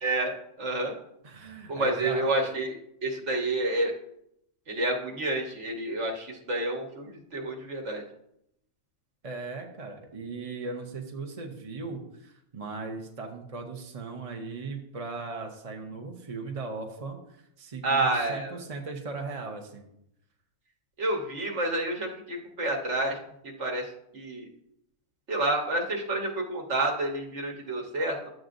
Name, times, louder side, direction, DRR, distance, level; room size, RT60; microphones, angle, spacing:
voice 1, 0.0-1.0 1.7-2.8 3.0-3.9 4.7-8.0 17.8-18.6 21.0-23.2 23.4-24.5 25.3-28.3, right 2 dB, 60° right, 1 dB, 1.6 m, -29 dB
voice 2, 1.2-2.2 9.2-19.8, right 4 dB, 30° right, 3 dB, 0.8 m, -38 dB
10.5 x 7.6 x 2.6 m, 0.77 s
omnidirectional pair, 1.4 m